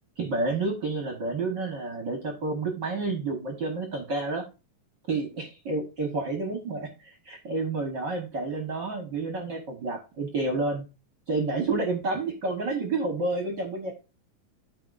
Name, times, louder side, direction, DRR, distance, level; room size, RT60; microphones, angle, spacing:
voice 1, 0.2-4.4 5.1-10.8 11.3-13.9, right 3 dB, 60° right, 3 dB, 1.2 m, -30 dB
12.0 x 4.8 x 2.5 m, 0.29 s
omnidirectional pair, 3.8 m